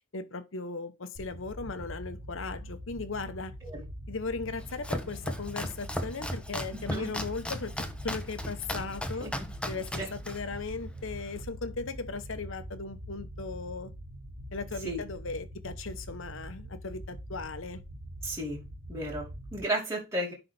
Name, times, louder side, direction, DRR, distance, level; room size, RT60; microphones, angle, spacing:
voice 1, 0.1-3.5 4.1-9.3 9.7-13.9 14.5-17.8, left 4 dB, 65° left, 1.0 m, -37 dB
sound 1, 1.1-19.6, equal, 75° right, 2.1 m, -43 dB
Domestic sounds home sounds, 4.5-11.4, equal, 5° left, 0.8 m, -37 dB
voice 2, 18.2-18.6 18.9-20.3, right 1 dB, 15° right, 2.4 m, -33 dB
10.0 x 4.0 x 3.4 m
head